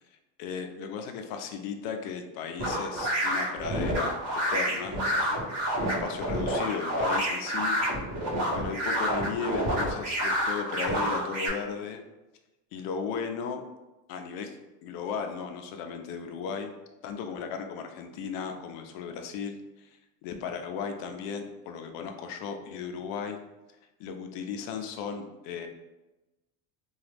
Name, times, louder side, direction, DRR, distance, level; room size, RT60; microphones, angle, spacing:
voice 1, 0.4-4.1 4.5-5.4 6.0-7.8 8.5-12.0 12.7-13.6 14.1-14.6 14.8-16.7 17.0-19.9 20.2-23.4 24.0-25.7, left 6 dB, 60° left, 5 dB, 0.5 m, -35 dB
sound 1, 2.6-11.5, equal, 50° right, 1.5 m, -28 dB
2.9 x 2.3 x 3.3 m, 1.0 s
cardioid pair, 165°, 42 cm